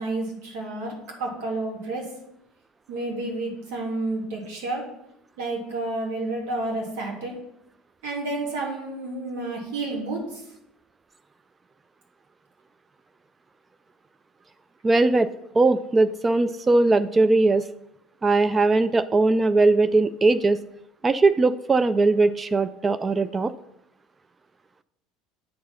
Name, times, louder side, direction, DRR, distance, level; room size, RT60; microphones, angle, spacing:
voice 1, 0.0-2.1 2.9-4.8 5.4-7.4 8.0-10.4, right 2 dB, 65° right, -1 dB, 2.5 m, -30 dB
voice 2, 14.8-15.3 15.5-17.7 18.2-20.6 21.0-23.5, right 3 dB, 20° right, 13 dB, 0.3 m, -20 dB
8.5 x 4.7 x 5.5 m, 0.81 s
figure-of-eight pair, 70°, 0 cm